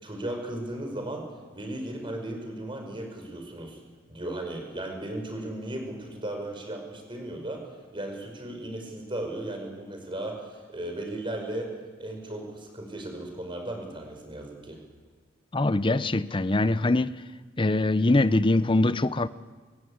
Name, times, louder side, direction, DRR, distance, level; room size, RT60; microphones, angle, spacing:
voice 1, 0.0-1.3 1.5-3.8 4.1-7.6 7.9-11.7 12.0-14.8, right 1 dB, 25° right, 5.3 m, -36 dB
voice 2, 15.5-17.1 17.6-19.3, left 2 dB, 25° left, 0.7 m, -23 dB
29.5 x 16.0 x 8.8 m
head